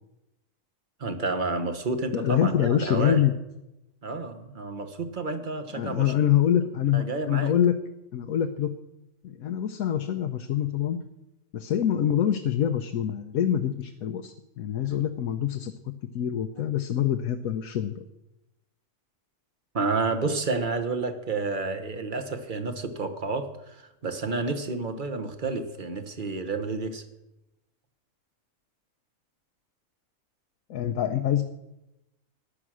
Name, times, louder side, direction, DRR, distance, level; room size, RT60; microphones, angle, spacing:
voice 1, 1.0-3.2 4.0-6.1 6.9-7.5 16.6-16.7 19.7-27.0, right 3 dB, 40° right, 8 dB, 1.2 m, -30 dB
voice 2, 2.1-3.3 5.7-7.8 8.1-8.7 9.2-11.0 11.5-15.7 16.1-18.0 30.7-31.4, left 10 dB, 85° left, 6 dB, 1.2 m, -25 dB
15.0 x 10.0 x 6.2 m, 0.94 s
omnidirectional pair, 1.4 m